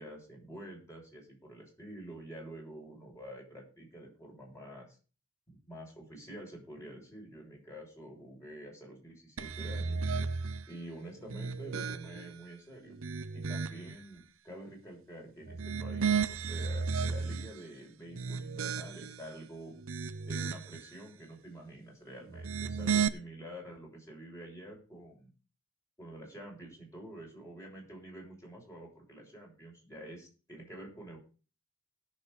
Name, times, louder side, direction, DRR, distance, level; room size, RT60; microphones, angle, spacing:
voice 1, 0.0-5.0 5.7-10.1 10.7-12.9 13.3-19.7 20.2-25.3 26.0-31.2, right 1 dB, 15° left, -1 dB, 6.8 m, -48 dB
sound 1, 9.4-10.7 11.2-12.4 12.9-14.0 15.4-17.6 18.1-19.2 19.7-20.8 22.3-23.1, right 5 dB, 70° right, 0.9 m, -34 dB
19.5 x 7.2 x 4.1 m, 0.36 s
head